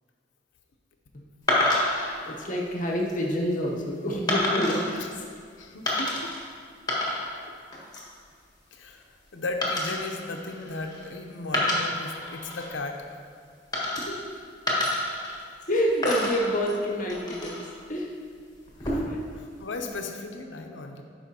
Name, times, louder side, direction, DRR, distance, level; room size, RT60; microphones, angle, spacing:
sound 1, 1.5-2.1 2.8-3.2 4.3-4.9 5.9-6.4 6.7-7.4 7.7-8.2 9.6-11.1 11.4-12.7 13.7-14.3 14.7-15.7 16.0-17.7 18.7-19.3, left 1 dB, 20° left, 1.4 m, -28 dB
voice 1, 2.3-5.2 14.0-14.2 15.7-17.6 17.9-18.1 19.0-19.2 19.8-20.0, equal, 45° left, -1 dB, 0.9 m, -28 dB
voice 2, 5.6-6.3 7.4-7.5 8.7-9.0 9.3-13.0 18.8-19.1 19.4-21.0, left 3 dB, 90° left, 4 dB, 0.7 m, -36 dB
11.5 x 4.9 x 2.8 m, 2.1 s
head